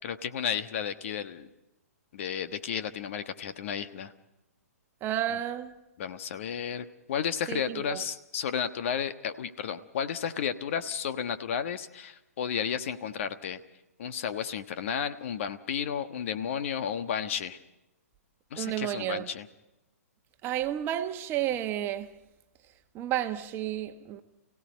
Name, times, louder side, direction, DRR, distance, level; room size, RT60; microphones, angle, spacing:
voice 1, 0.0-1.5 2.1-4.1 6.0-13.6 14.0-17.6 18.5-19.5, left 8 dB, 50° left, 1.3 m, -33 dB
voice 2, 5.0-5.7 7.5-8.0 18.6-19.3 20.4-22.1 22.9-24.2, right 12 dB, 25° right, 1.3 m, -31 dB
29.5 x 17.0 x 5.3 m
figure-of-eight pair, 125°, 8 cm